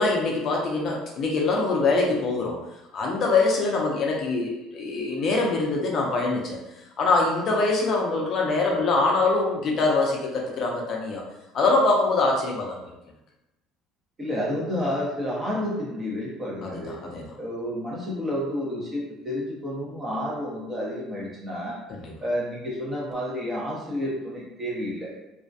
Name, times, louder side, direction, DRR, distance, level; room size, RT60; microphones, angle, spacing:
voice 1, 0.0-2.6 2.9-6.6 7.0-11.2 11.5-12.8 16.6-17.2 21.9-22.1, left 3 dB, 40° left, -1 dB, 0.4 m, -24 dB
voice 2, 14.2-17.0 17.4-21.8 22.2-25.1, left 1 dB, 20° right, -5 dB, 0.7 m, -30 dB
2.3 x 2.1 x 2.5 m, 0.96 s
cardioid pair, 150°, 0 cm